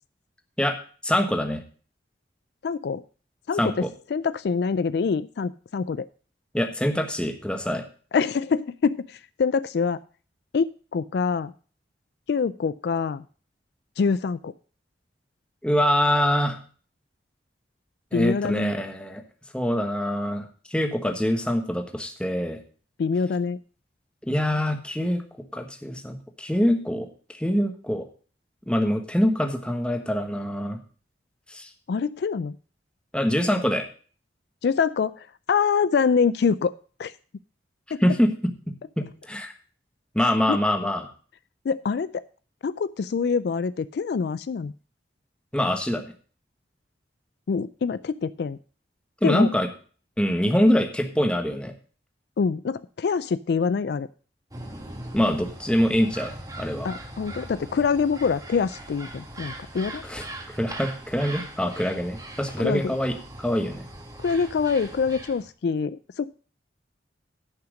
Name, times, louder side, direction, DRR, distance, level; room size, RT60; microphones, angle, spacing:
voice 1, 1.0-1.6 3.6-3.9 6.5-7.8 15.6-16.6 18.1-19.2 19.5-22.6 24.2-25.2 25.5-27.1 27.3-28.0 28.7-30.8 31.5-31.7 33.1-33.9 38.0-38.3 39.0-39.5 40.1-41.1 45.5-46.1 49.2-49.7 50.2-51.7 55.1-56.3 56.6-56.9 60.0-60.2 60.6-63.1 63.4-63.8, equal, 5° left, 5 dB, 1.3 m, -24 dB
voice 2, 2.6-3.0 3.5-6.1 8.1-10.0 10.5-11.5 12.3-13.2 14.0-14.5 18.1-18.7 23.0-23.6 31.9-32.5 34.6-36.7 37.0-37.1 37.9-38.0 40.5-40.6 41.7-42.2 42.6-44.7 47.5-48.6 49.2-49.5 52.4-54.1 56.8-60.0 62.6-62.9 64.2-66.3, left 5 dB, 60° left, 16 dB, 0.3 m, -25 dB
sound 1, 54.5-65.5, right 1 dB, 20° right, 1.6 m, -40 dB
10.5 x 5.8 x 6.2 m, 0.41 s
head